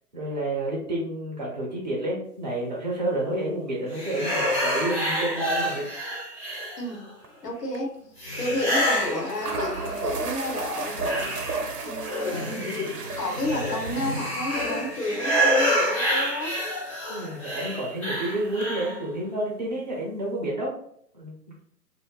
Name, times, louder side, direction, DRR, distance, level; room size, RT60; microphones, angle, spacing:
voice 1, 0.1-5.8 17.1-20.7 21.1-21.4, right 1 dB, 30° right, -3 dB, 0.5 m, -29 dB
sound 1, 3.9-7.1 8.2-10.2 10.6-19.0, equal, 25° left, 0.5 m, -28 dB
sound 2, 7.2-7.5 7.7-7.8 8.9-9.0 9.3-18.7, right 3 dB, 80° right, 0.6 m, -36 dB
voice 2, 7.4-8.0 8.4-11.3 11.8-12.5 13.2-16.6, left 1 dB, 75° left, 0 dB, 1.1 m, -31 dB
2.5 x 2.2 x 2.3 m, 0.66 s
hypercardioid pair, 135°, 47 cm